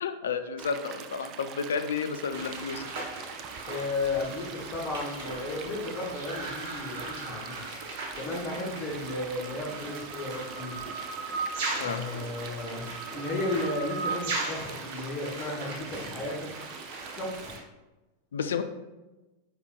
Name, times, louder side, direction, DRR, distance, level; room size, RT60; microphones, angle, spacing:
voice 1, 0.0-2.8 11.8-12.0 18.3-18.6, left 6 dB, 65° left, 9 dB, 0.3 m, -31 dB
Stream, 0.6-17.6, right 7 dB, 35° right, 0.3 m, -45 dB
sound 1, 2.3-17.6, right 3 dB, 50° right, 0.9 m, -38 dB
voice 2, 3.7-7.6 8.1-10.8 11.7-16.5 17.2-17.5, left 2 dB, 35° left, -1 dB, 0.9 m, -34 dB
5.0 x 4.7 x 2.2 m, 1.1 s
figure-of-eight pair, 90°, 0 cm